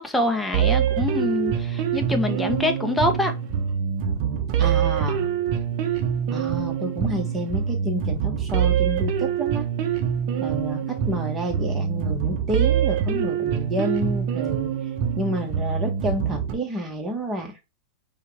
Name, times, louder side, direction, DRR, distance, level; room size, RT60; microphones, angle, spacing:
voice 1, 0.0-3.3, left 2 dB, 5° left, 0.8 m, -25 dB
sound 1, 0.5-16.5, right 8 dB, 50° right, 0.8 m, -25 dB
voice 2, 4.6-5.3 6.3-9.7 10.4-14.7 15.2-17.5, right 1 dB, 20° right, 1.3 m, -29 dB
5.5 x 2.4 x 3.3 m
hypercardioid pair, 115°, 0 cm